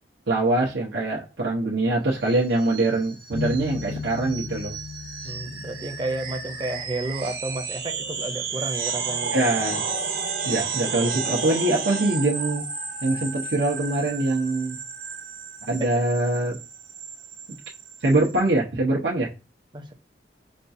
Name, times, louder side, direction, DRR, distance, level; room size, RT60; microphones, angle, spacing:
voice 1, 0.3-4.7 9.3-9.8 10.4-12.7 13.0-14.8 15.7-16.6 18.0-19.3, right 2 dB, 80° right, 0.8 m, -23 dB
sound 1, 2.2-18.4, right 5 dB, 55° right, 1.2 m, -33 dB
sound 2, 3.3-9.1, left 5 dB, 40° left, 0.3 m, -37 dB
voice 2, 5.2-9.4 19.7-19.9, right 2 dB, 25° right, 0.6 m, -31 dB
5.2 x 2.4 x 2.6 m
head